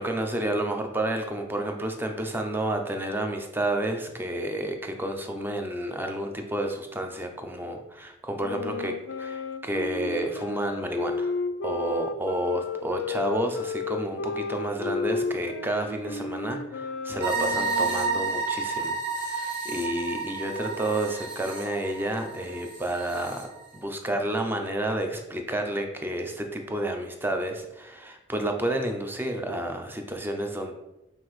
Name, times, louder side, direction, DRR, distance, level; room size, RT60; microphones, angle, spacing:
voice 1, 0.0-11.4 11.6-23.5 23.7-30.7, right 1 dB, 10° right, 4 dB, 0.4 m, -30 dB
Wind instrument woodwind instrument, 8.4-18.4, left 5 dB, 75° left, 0.3 m, -33 dB
sound 1, 17.2-23.4, right 4 dB, 30° right, 1.0 m, -31 dB
5.6 x 2.6 x 3.1 m, 0.91 s
head